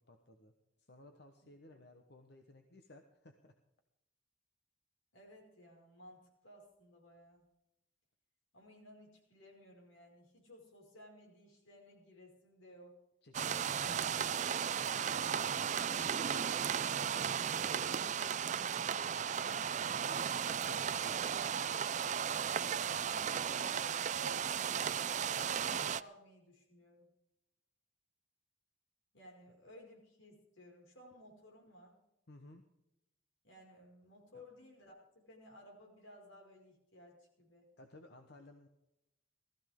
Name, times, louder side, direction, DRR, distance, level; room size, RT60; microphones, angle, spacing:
voice 1, 0.1-0.5 0.8-3.5 13.2-14.5 15.9-16.4 17.5-18.4 18.7-19.8 29.5-29.6 32.3-32.6 34.3-34.4 37.8-38.7, left 2 dB, 55° left, 5 dB, 1.1 m, -58 dB
voice 2, 5.1-7.4 8.5-13.0 15.1-16.4 19.4-19.6 20.6-21.9 23.0-24.4 25.0-27.1 29.1-32.0 33.4-37.7, equal, 80° left, -1 dB, 5.5 m, -57 dB
sound 1, 13.3-26.0, right 8 dB, 40° right, 0.4 m, -35 dB
19.5 x 14.5 x 3.7 m, 0.88 s
head